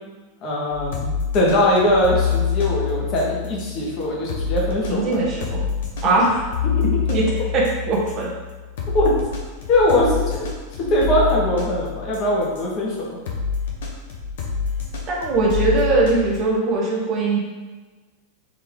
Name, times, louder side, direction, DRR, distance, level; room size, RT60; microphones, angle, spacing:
voice 1, 0.4-5.2 6.8-6.9 8.9-9.1 9.7-10.5 10.8-13.2, left 1 dB, 35° left, -4 dB, 1.2 m, -21 dB
sound 1, 0.7-12.7 13.3-16.4, left 6 dB, 55° left, 0.7 m, -27 dB
voice 2, 4.9-5.7 6.0-6.4 7.1-7.2 7.5-8.3 15.1-17.4, right 3 dB, 35° right, -3 dB, 1.0 m, -20 dB
3.7 x 3.3 x 3.5 m, 1.3 s
figure-of-eight pair, 90°, 0 cm